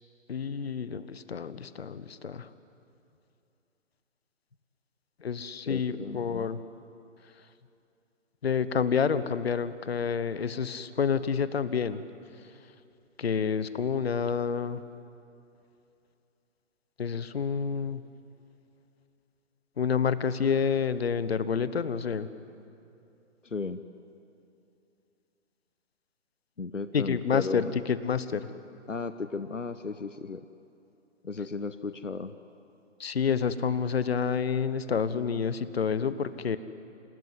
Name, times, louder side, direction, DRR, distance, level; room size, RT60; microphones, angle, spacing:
voice 1, 0.3-2.5 5.2-6.6 8.4-12.0 13.2-14.8 17.0-18.0 19.8-22.3 26.9-28.5 33.0-36.6, left 6 dB, 55° left, 15 dB, 1.1 m, -28 dB
voice 2, 5.7-6.5 23.4-23.8 26.6-27.7 28.9-30.5 31.2-32.3, left 4 dB, 85° left, 12 dB, 1.0 m, -35 dB
28.0 x 18.5 x 9.6 m, 2.7 s
figure-of-eight pair, 140°, 37 cm